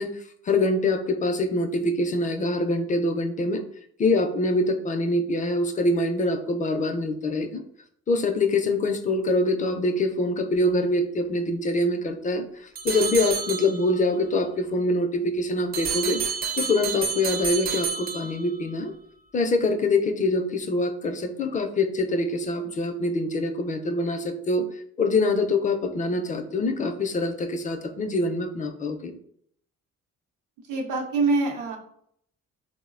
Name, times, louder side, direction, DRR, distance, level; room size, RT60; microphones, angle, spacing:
voice 1, 0.0-3.6 4.0-7.6 8.1-16.2 16.6-18.9 19.3-24.6 25.0-29.2, left 2 dB, 25° left, 6 dB, 0.4 m, -25 dB
sound 1, 12.8-14.1 15.7-18.7, right 6 dB, 30° right, 0.5 m, -30 dB
voice 2, 30.7-31.8, right 3 dB, 80° right, 1 dB, 0.7 m, -24 dB
3.8 x 2.0 x 2.4 m, 0.68 s
cardioid pair, 90°, 30 cm